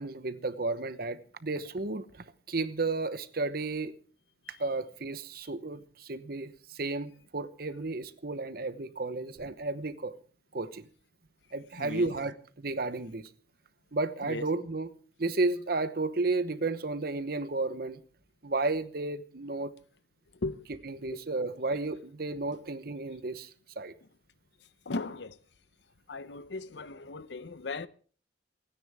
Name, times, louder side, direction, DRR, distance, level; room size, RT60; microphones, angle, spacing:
voice 1, 0.0-3.9 4.6-10.1 10.5-10.9 11.5-13.3 13.9-14.9 15.2-18.0 18.4-19.7 20.8-23.5 23.8-23.9, right 3 dB, 55° right, 1.0 m, -33 dB
voice 2, 11.7-12.1 14.2-14.5 20.3-20.7 21.1-21.2 24.9-25.4 26.1-27.9, left 3 dB, 70° left, 0.7 m, -37 dB
28.5 x 10.0 x 3.5 m
head